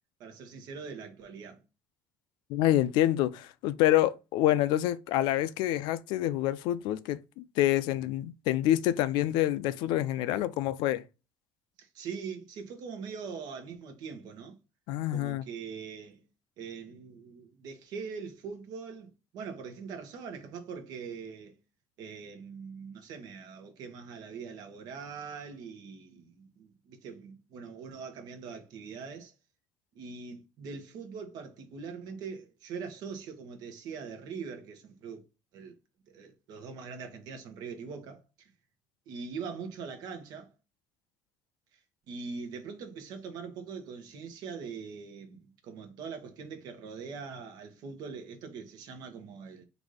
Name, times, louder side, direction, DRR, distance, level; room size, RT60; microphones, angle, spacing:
voice 1, 0.2-1.6 11.8-14.6 15.1-16.2 16.6-21.6 22.0-29.3 29.9-35.2 35.5-35.8 36.1-38.5 39.1-40.5 41.7-41.8 42.1-49.6, right 5 dB, 60° right, 1.0 m, -42 dB
voice 2, 2.5-11.0 14.9-15.4, left 13 dB, 90° left, 0.4 m, -27 dB
4.0 x 2.6 x 4.8 m
cardioid pair, 180°, 8 cm